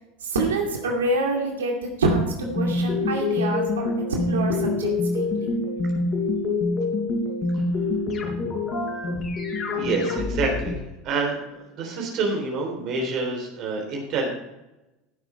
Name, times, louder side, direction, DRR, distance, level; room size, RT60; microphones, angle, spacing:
voice 1, 0.2-3.9 4.3-5.5, right 2 dB, 85° right, 1 dB, 2.3 m, -26 dB
sound 1, 2.4-10.7, left 3 dB, 40° left, 4.6 m, -26 dB
voice 2, 9.7-10.8 11.0-11.4 11.8-14.3, right 3 dB, 55° right, 1 dB, 3.4 m, -27 dB
15.5 x 7.4 x 4.4 m, 0.98 s
hypercardioid pair, 85°, 0 cm